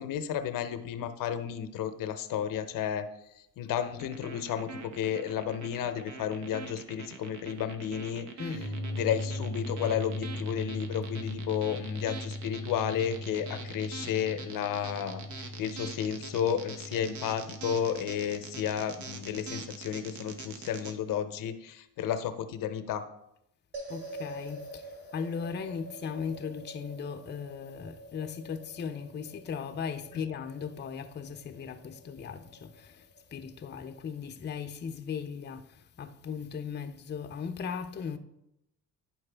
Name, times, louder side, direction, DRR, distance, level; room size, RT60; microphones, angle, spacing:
voice 1, 0.0-3.0 3.6-8.3 8.9-23.0, left 9 dB, 70° left, 0.7 m, -32 dB
sound 1, 4.0-20.9, right 4 dB, 60° right, 1.0 m, -44 dB
sound 2, 8.5-21.5, left 1 dB, 75° right, 1.4 m, -40 dB
sound 3, 23.7-34.2, right 2 dB, 35° right, 2.8 m, -47 dB
voice 2, 23.9-38.2, left 6 dB, 30° left, 0.6 m, -38 dB
10.5 x 4.5 x 3.3 m
cardioid pair, 85°, 34 cm